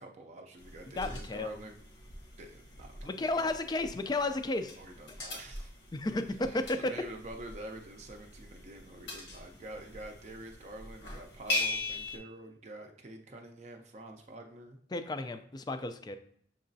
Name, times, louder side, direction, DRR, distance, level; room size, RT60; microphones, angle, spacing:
voice 1, 0.0-1.8 2.4-3.6 4.8-5.7 6.5-14.8, right 1 dB, 40° right, 3 dB, 0.5 m, -47 dB
sound 1, 0.6-12.2, left 2 dB, 80° left, 1.1 m, -41 dB
voice 2, 0.9-1.6 3.0-4.7 5.9-6.9 14.9-16.2, left 2 dB, 20° left, 9 dB, 0.3 m, -33 dB
6.6 x 2.9 x 2.7 m, 0.67 s
head